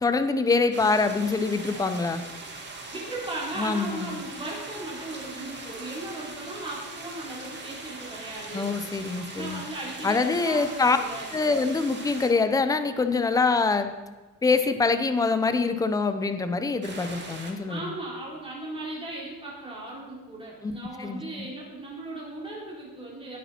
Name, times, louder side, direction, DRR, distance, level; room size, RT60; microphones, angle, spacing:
voice 1, 0.0-2.2 3.6-4.2 8.5-9.6 10.0-11.0 11.3-13.9 14.4-17.9 20.6-21.2, left 4 dB, 10° left, 9 dB, 0.6 m, -25 dB
sound 1, 0.7-12.3 16.8-17.5, right 3 dB, 30° right, 1.9 m, -41 dB
voice 2, 2.9-8.8 9.3-11.3 17.7-23.4, right 2 dB, 15° right, -5 dB, 4.1 m, -37 dB
18.5 x 8.5 x 4.4 m, 1.2 s
cardioid pair, 170°, 34 cm